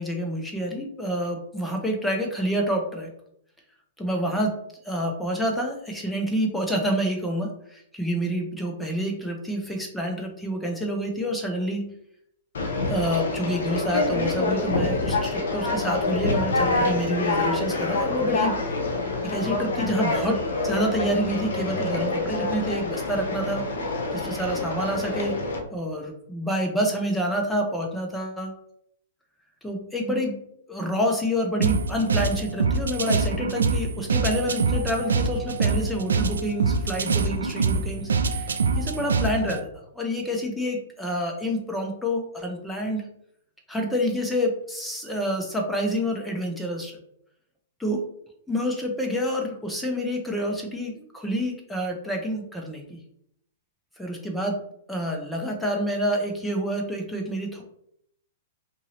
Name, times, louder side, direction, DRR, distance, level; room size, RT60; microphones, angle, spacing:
voice 1, 0.0-3.1 4.0-4.5 4.8-11.8 12.9-18.5 19.2-20.4 20.6-25.3 25.7-28.6 29.6-30.3 30.7-43.0 43.7-46.9 47.8-48.0 48.5-53.0 54.0-54.6 54.9-57.6, equal, 5° left, 1 dB, 0.7 m, -28 dB
Conversation, 12.5-25.6, left 3 dB, 80° left, 0.6 m, -26 dB
sound 1, 31.6-39.6, right 4 dB, 90° right, 0.3 m, -25 dB
2.7 x 2.6 x 2.9 m, 0.73 s
hypercardioid pair, 125°, 0 cm